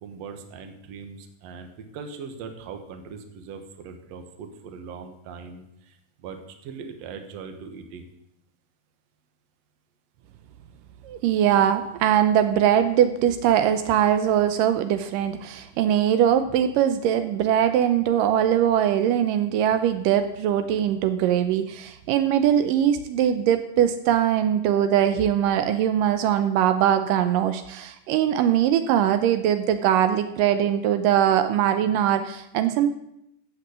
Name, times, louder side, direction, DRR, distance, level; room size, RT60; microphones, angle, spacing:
voice 1, 0.0-8.1, right 5 dB, 60° right, 6 dB, 2.1 m, -40 dB
voice 2, 11.0-32.9, right 10 dB, 80° right, 9 dB, 2.3 m, -21 dB
14.5 x 6.2 x 8.2 m, 0.80 s
omnidirectional pair, 3.9 m